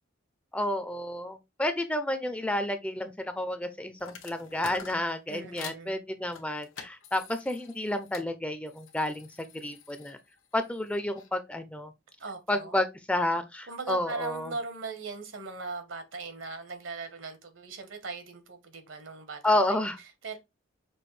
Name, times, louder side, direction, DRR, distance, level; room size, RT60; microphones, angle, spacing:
voice 1, 0.5-10.2 10.5-11.9 12.5-14.5 19.4-20.0, left 1 dB, 5° left, 0.4 m, -30 dB
open-cd-player-play-close, 4.0-5.8 6.3-8.3 8.7-11.3, left 6 dB, 90° left, 1.0 m, -48 dB
voice 2, 5.3-6.1 12.2-12.8 13.7-20.4, right 4 dB, 80° right, 1.1 m, -39 dB
6.1 x 2.6 x 3.2 m
head